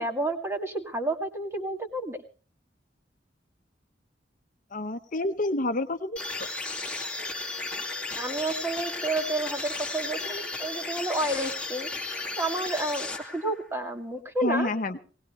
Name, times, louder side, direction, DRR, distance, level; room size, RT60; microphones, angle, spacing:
voice 1, 0.0-2.2 8.2-11.9 12.4-14.7, right 1 dB, 15° right, 4 dB, 2.2 m, -30 dB
voice 2, 4.7-6.2 14.4-15.0, left 2 dB, 50° left, 8 dB, 1.0 m, -28 dB
sound 1, 6.2-13.7, left 3 dB, 5° left, 2.2 m, -34 dB
19.5 x 19.0 x 3.2 m, 0.37 s
head